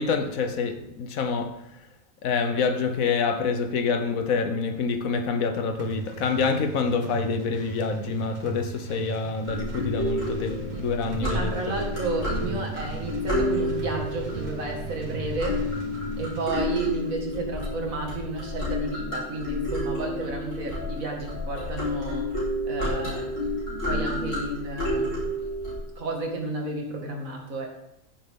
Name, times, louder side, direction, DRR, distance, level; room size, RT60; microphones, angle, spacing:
voice 1, 0.0-1.7 2.2-11.7, left 5 dB, 90° left, 1.3 m, -27 dB
sound 1, 5.8-16.5, right 3 dB, 40° right, 1.0 m, -38 dB
sound 2, 9.5-25.8, left 1 dB, 65° left, 4.9 m, -30 dB
voice 2, 11.2-15.6 16.2-22.3 22.6-23.5 23.9-25.2 26.0-27.7, right 3 dB, 85° right, 2.5 m, -32 dB
15.0 x 7.3 x 3.7 m
omnidirectional pair, 1.4 m